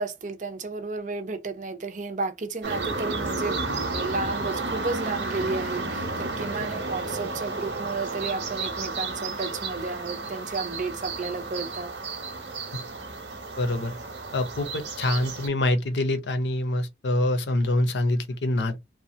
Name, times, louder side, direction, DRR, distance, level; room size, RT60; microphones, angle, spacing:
voice 1, 0.0-3.6 3.9-11.9, right 3 dB, 45° right, 0.5 m, -32 dB
sound 1, 2.6-15.5, right 3 dB, 80° right, 1.0 m, -32 dB
voice 2, 13.6-14.0 14.3-18.8, left 1 dB, 75° left, 0.6 m, -25 dB
3.0 x 2.2 x 2.7 m
head